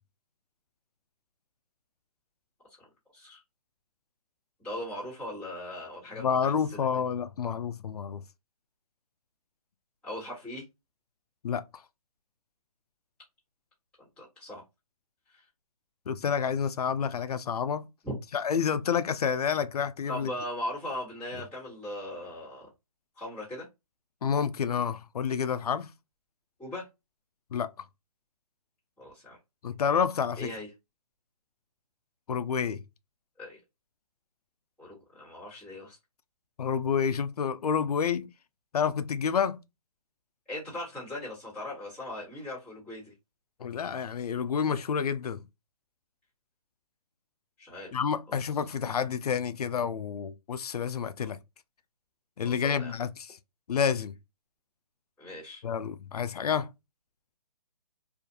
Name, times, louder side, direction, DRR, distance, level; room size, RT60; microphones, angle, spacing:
voice 1, 4.6-6.9 10.0-10.6 14.0-14.6 15.3-15.4 18.0-18.1 20.1-22.7 23.2-23.7 26.6-26.9 29.0-29.4 30.4-30.7 33.4-33.6 34.8-36.0 40.5-43.1 47.6-47.9 51.2-51.3 52.4-52.9 55.2-55.6, left 1 dB, 5° left, 1.3 m, -39 dB
voice 2, 6.2-8.2 11.4-11.6 16.1-17.9 18.3-20.3 24.2-25.9 27.5-27.9 29.6-30.5 32.3-32.8 36.6-38.3 38.7-39.6 43.6-45.4 47.9-51.4 52.4-53.4 53.7-54.1 55.6-56.7, left 7 dB, 85° left, 0.4 m, -29 dB
2.5 x 2.4 x 2.6 m
hypercardioid pair, 160°, 19 cm